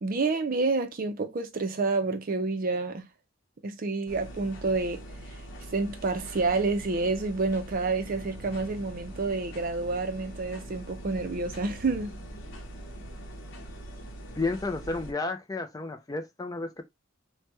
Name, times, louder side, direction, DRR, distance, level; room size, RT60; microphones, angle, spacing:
voice 1, 0.0-3.0 3.6-5.0 5.7-12.1, right 3 dB, 45° right, 0.5 m, -29 dB
sound 1, 4.1-15.1, right 1 dB, 65° left, 0.8 m, -43 dB
voice 2, 14.4-16.8, left 3 dB, 20° left, 0.4 m, -32 dB
3.2 x 2.2 x 2.9 m
head